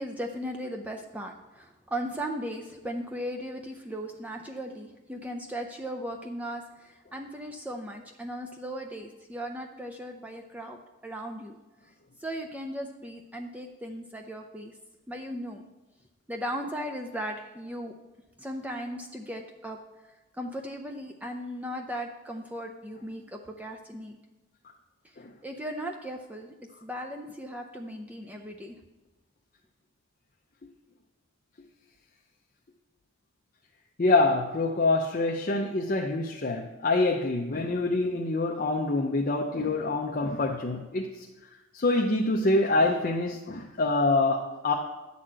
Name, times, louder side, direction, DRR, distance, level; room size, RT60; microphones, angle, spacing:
voice 1, 0.0-11.6 12.2-14.7 15.1-15.6 16.3-17.9 18.4-19.8 20.4-24.1 25.4-26.5 26.8-28.8, equal, 5° right, 3 dB, 0.5 m, -37 dB
voice 2, 34.0-41.3 41.7-44.7, left 2 dB, 40° left, 1 dB, 0.6 m, -26 dB
9.9 x 4.2 x 7.5 m, 1.1 s
head